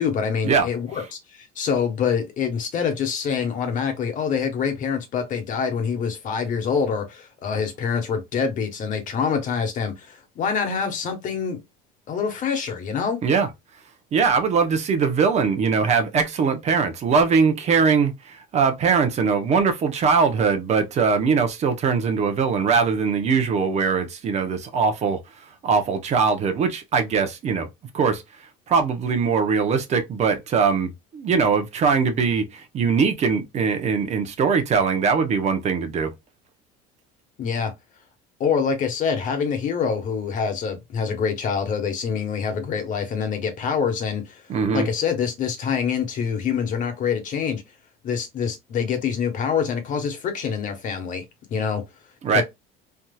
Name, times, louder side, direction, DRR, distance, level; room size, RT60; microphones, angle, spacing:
voice 1, 0.0-11.6 12.1-13.2 37.4-37.7 38.4-44.4 44.7-47.6 48.0-51.2 51.5-51.8 52.3-52.4, left 6 dB, 45° left, 1.2 m, -25 dB
voice 2, 14.1-25.2 25.6-27.7 27.9-28.2 28.7-36.1 44.5-44.9 52.2-52.4, right 5 dB, 35° right, 0.7 m, -21 dB
3.5 x 2.8 x 2.2 m
cardioid pair, 130°, 19 cm